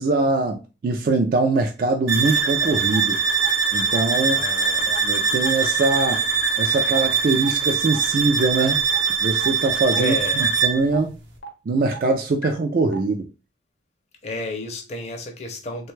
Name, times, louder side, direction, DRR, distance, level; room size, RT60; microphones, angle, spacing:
voice 1, 0.0-3.2 3.7-4.4 4.9-6.2 6.6-8.8 9.2-10.2 10.6-11.1 11.7-13.3, right 3 dB, 50° right, 0.3 m, -22 dB
sound 1, 2.1-10.9, right 6 dB, 75° right, 0.7 m, -22 dB
sound 2, 2.4-2.5 2.9-3.0 3.4-3.5 3.9-4.0 4.4-4.5 4.9-5.0 5.4-5.5 5.9-6.0 6.4-6.5 6.9-7.0 7.4-7.5 7.9-8.0 8.4-8.5 8.9-9.0 9.4-9.5 9.9-10.0 10.4-10.5 10.9-11.0 11.4-11.5 11.9-12.0 12.4-12.5 12.9-13.0, left 2 dB, 80° left, 0.7 m, -33 dB
voice 2, 4.3-4.9 10.0-10.5 14.2-15.9, left 2 dB, 35° left, 0.5 m, -31 dB
3.1 x 2.2 x 3.1 m
head